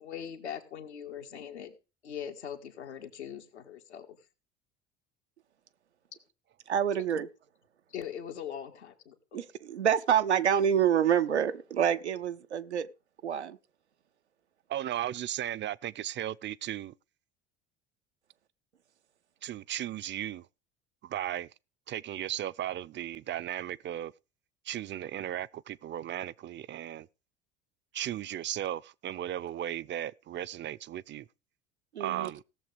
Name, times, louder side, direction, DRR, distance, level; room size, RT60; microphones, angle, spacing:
voice 1, 0.0-1.8 2.0-4.2 7.9-9.4, left 9 dB, 85° left, 1.7 m, -41 dB
voice 2, 6.7-7.3 9.3-12.9 13.2-13.6 31.9-32.3, right 9 dB, 90° right, 0.8 m, -27 dB
voice 3, 14.7-17.0 19.4-20.5 21.0-21.5 21.9-24.1 24.6-27.1 27.9-31.3 32.0-32.4, right 12 dB, 35° right, 0.6 m, -36 dB
17.5 x 7.2 x 5.0 m
hypercardioid pair, 70°, 33 cm